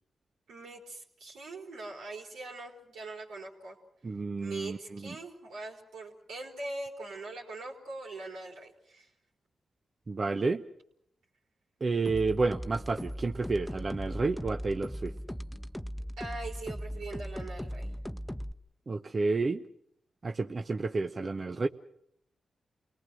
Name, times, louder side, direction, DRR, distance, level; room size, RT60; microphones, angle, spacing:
voice 1, 0.5-3.8 4.4-9.1 16.2-17.9, right 2 dB, 90° right, -1 dB, 4.4 m, -42 dB
voice 2, 4.0-5.1 10.1-10.6 11.8-15.1 18.9-19.6 20.2-21.7, right 3 dB, 50° right, 7 dB, 0.9 m, -30 dB
sound 1, 12.0-18.5, equal, 10° left, 0.9 m, -38 dB
28.5 x 19.5 x 6.3 m, 0.73 s
supercardioid pair, 40°, 0 cm